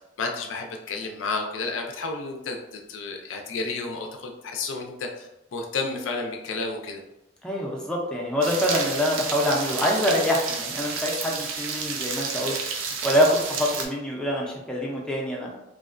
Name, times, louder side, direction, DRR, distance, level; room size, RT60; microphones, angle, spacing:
voice 1, 0.2-7.0, left 3 dB, 70° left, 2 dB, 0.4 m, -31 dB
voice 2, 7.4-15.5, equal, 5° left, -3 dB, 0.4 m, -25 dB
sound 1, 8.4-13.9, right 5 dB, 85° right, 0.4 m, -31 dB
2.4 x 2.1 x 2.4 m, 0.89 s
head